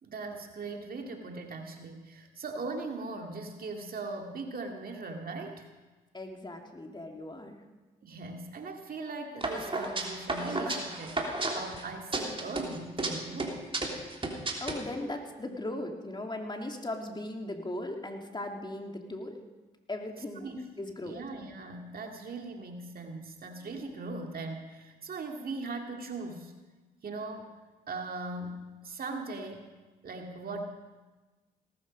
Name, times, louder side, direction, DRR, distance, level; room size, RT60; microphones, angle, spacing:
voice 1, 0.0-5.7 8.0-11.2 11.5-13.6 20.4-20.6 21.0-26.5 27.0-27.5 27.9-29.7 30.0-30.6, right 3 dB, 50° right, 3 dB, 2.3 m, -39 dB
voice 2, 6.1-7.6 10.5-10.6 14.6-19.4 19.9-20.5 20.8-21.2 23.5-23.8, left 1 dB, 25° left, 3 dB, 2.7 m, -38 dB
sound 1, 9.4-11.8 12.1-13.1 13.4-14.8, right 2 dB, 30° right, 3.3 m, -32 dB
18.0 x 13.0 x 5.3 m, 1.2 s
supercardioid pair, 55°, 19 cm